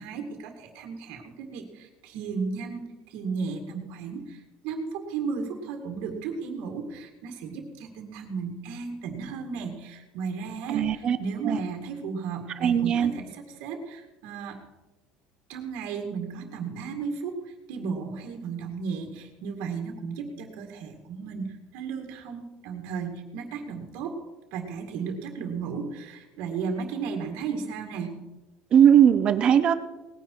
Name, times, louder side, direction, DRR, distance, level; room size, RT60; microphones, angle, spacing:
voice 1, 0.0-14.6 15.5-24.2 24.5-28.2, right 5 dB, 60° right, 3 dB, 2.1 m, -34 dB
voice 2, 10.7-11.2 11.4-11.6 12.6-13.1 28.7-29.7, right 9 dB, 30° right, 12 dB, 0.7 m, -19 dB
19.0 x 9.9 x 4.6 m, 1.1 s
cardioid pair, 180°, 3 cm